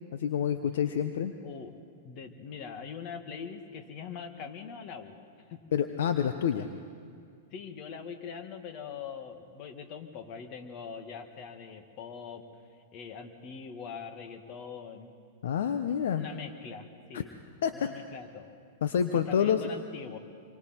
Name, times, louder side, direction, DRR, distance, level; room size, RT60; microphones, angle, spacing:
voice 1, 0.1-1.3 5.7-6.7 15.4-16.3 17.1-17.2 17.6-17.9 18.8-19.6, left 8 dB, 70° left, 8 dB, 0.9 m, -28 dB
voice 2, 1.4-1.8 2.0-5.2 5.5-5.6 6.5-6.7 7.5-12.4 12.9-15.1 15.9-17.3 17.7-18.5 19.1-20.2, left 6 dB, 45° left, 7 dB, 2.1 m, -42 dB
27.0 x 24.0 x 4.6 m, 2.3 s
hypercardioid pair, 110°, 0 cm